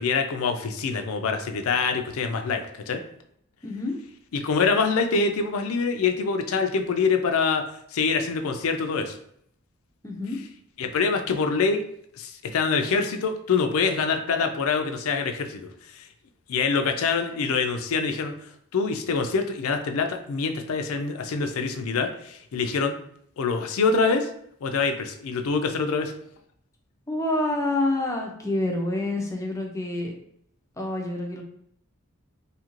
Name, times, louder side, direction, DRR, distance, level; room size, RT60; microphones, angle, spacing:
voice 1, 0.0-3.0 4.3-7.6 7.9-9.2 10.8-11.8 12.2-16.1 16.5-18.3 18.7-22.9 23.4-24.3 24.6-26.1, left 4 dB, 75° left, 6 dB, 0.4 m, -25 dB
voice 2, 3.6-4.0 10.0-10.4 27.1-30.1 30.8-31.4, left 2 dB, 15° left, 1 dB, 0.4 m, -27 dB
2.7 x 2.5 x 3.0 m, 0.69 s
head